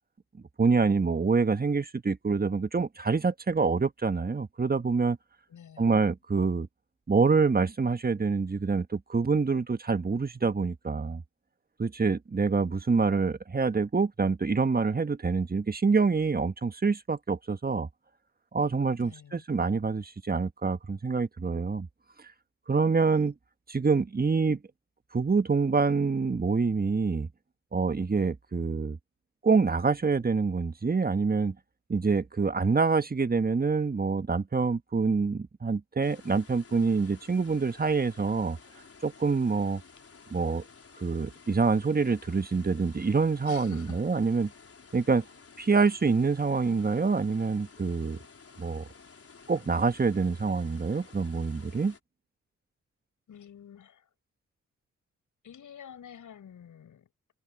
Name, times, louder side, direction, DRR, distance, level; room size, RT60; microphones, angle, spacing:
voice 1, 0.6-5.2 5.8-6.7 7.1-11.2 11.8-17.9 18.5-21.9 22.7-23.3 23.7-24.6 25.1-27.3 27.7-29.0 29.4-31.5 31.9-38.6 39.0-39.8 40.3-40.6 41.0-44.5 44.9-45.2 45.6-48.2 48.6-48.9 49.5-51.9, right 4 dB, 30° right, 1.5 m, -26 dB
voice 2, 5.5-6.0 19.0-19.4 43.5-44.0 53.3-54.1 55.4-57.1, left 8 dB, 70° left, 7.7 m, -48 dB
sound 1, 36.0-52.0, left 5 dB, 45° left, 4.5 m, -53 dB
supercardioid pair, 45°, 32 cm